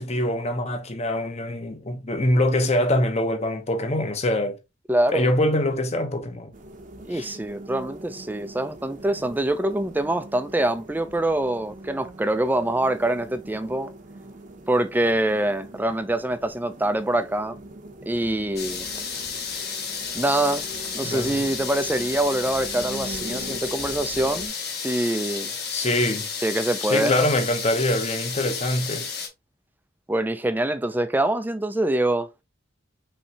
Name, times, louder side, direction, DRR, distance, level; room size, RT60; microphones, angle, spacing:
voice 1, 0.0-4.6 5.1-6.5 7.1-7.3 21.0-21.4 25.7-26.3 26.8-29.1, left 1 dB, 35° left, 0.9 m, -24 dB
voice 2, 4.9-5.3 7.1-13.9 14.7-17.6 18.1-18.8 20.1-20.6 20.9-24.5 24.8-25.5 26.4-27.2 30.1-32.3, right 1 dB, 10° right, 0.4 m, -24 dB
sound 1, 6.5-24.5, right 1 dB, 40° right, 0.8 m, -42 dB
sound 2, 18.6-29.3, left 6 dB, 55° left, 1.5 m, -32 dB
5.3 x 3.2 x 2.9 m
head